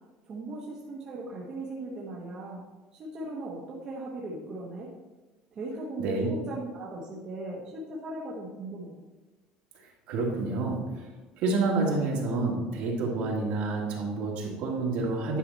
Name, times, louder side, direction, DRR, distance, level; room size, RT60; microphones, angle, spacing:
voice 1, 0.3-2.6 2.9-4.9 5.5-8.9, right 2 dB, 25° right, -4 dB, 1.2 m, -38 dB
voice 2, 6.0-6.3 9.7-11.1 11.4-15.4, right 3 dB, 50° right, -2 dB, 2.1 m, -29 dB
10.0 x 5.8 x 4.1 m, 1.2 s
cardioid pair, 175°, 3 cm